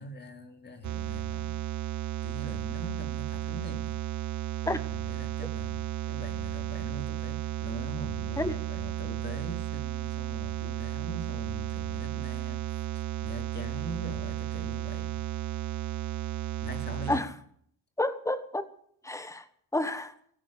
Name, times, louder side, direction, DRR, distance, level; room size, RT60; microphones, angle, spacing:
voice 1, 0.0-1.6 2.2-4.0 4.7-12.6 12.9-15.2 16.6-17.3, equal, 25° left, 6 dB, 2.6 m, -42 dB
sound 1, 0.8-17.2, right 15 dB, 40° right, 0.8 m, -34 dB
voice 2, 18.0-18.7 19.0-19.4 19.7-20.1, left 1 dB, 5° left, 12 dB, 1.2 m, -29 dB
15.5 x 9.8 x 8.6 m, 0.64 s
cardioid pair, 135°, 44 cm